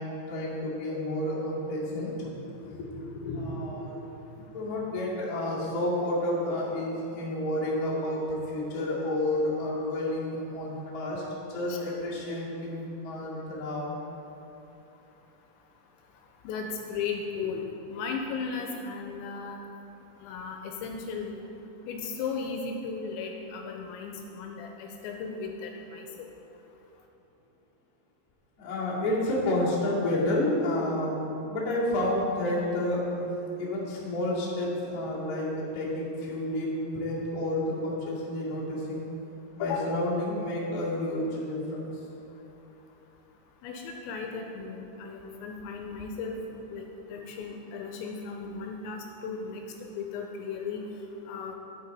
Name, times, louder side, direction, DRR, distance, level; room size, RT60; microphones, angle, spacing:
voice 1, 0.0-4.0 4.3-13.9 28.6-39.1 39.5-41.9, left 1 dB, 35° left, -9 dB, 1.5 m, -30 dB
voice 2, 16.4-17.7 17.9-19.6 20.2-21.5 21.9-26.3 39.6-39.9 43.6-46.4 46.7-50.8 51.3-51.6, left 5 dB, 85° left, 2 dB, 2.8 m, -36 dB
9.2 x 9.0 x 4.1 m, 3.0 s
omnidirectional pair, 5.3 m